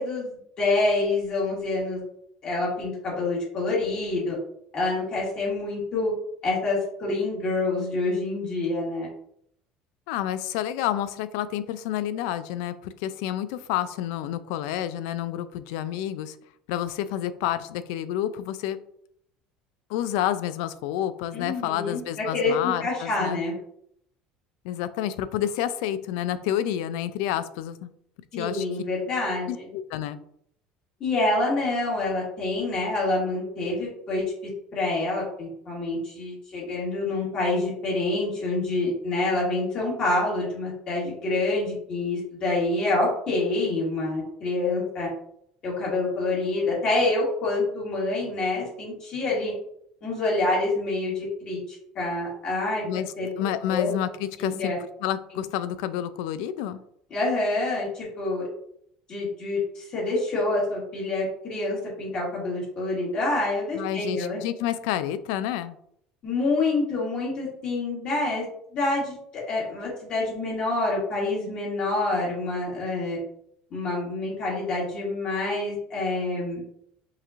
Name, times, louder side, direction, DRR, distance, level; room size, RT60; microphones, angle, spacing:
voice 1, 0.0-2.0 2.4-4.3 4.7-6.1 6.4-9.1 21.3-22.0 22.3-23.5 28.3-29.7 31.0-34.2 34.7-45.1 45.6-49.5 50.0-51.6 51.9-52.9 53.2-53.3 53.7-53.9 54.4-54.8 57.1-58.4 59.1-64.4 66.2-68.4 68.7-69.2 69.5-73.2 73.7-76.6, left 2 dB, 35° left, -5 dB, 1.7 m, -27 dB
voice 2, 10.1-16.4 16.7-18.8 19.9-23.4 24.6-27.9 28.4-28.6 29.5-30.2 52.8-54.7 55.0-56.8 63.7-65.8, left 11 dB, 85° left, 13 dB, 0.3 m, -29 dB
5.6 x 3.0 x 2.5 m, 0.69 s
cardioid pair, 175°, 3 cm